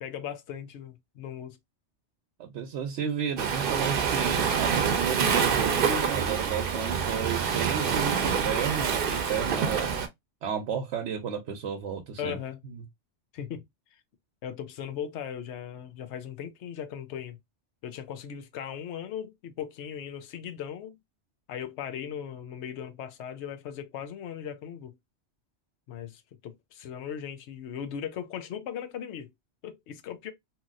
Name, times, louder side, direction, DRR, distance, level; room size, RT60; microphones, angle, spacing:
voice 1, 0.0-1.6 12.2-12.6 13.3-13.6 14.4-17.4 17.8-21.0 21.5-25.0 25.9-29.3 29.6-30.3, left 8 dB, 85° left, 0.9 m, -38 dB
voice 2, 2.4-9.9 10.4-12.4 12.7-12.8, right 7 dB, 85° right, 0.9 m, -32 dB
Waves surf, 3.4-10.1, right 6 dB, 60° right, 0.7 m, -26 dB
2.9 x 2.8 x 2.4 m
omnidirectional pair, 1.2 m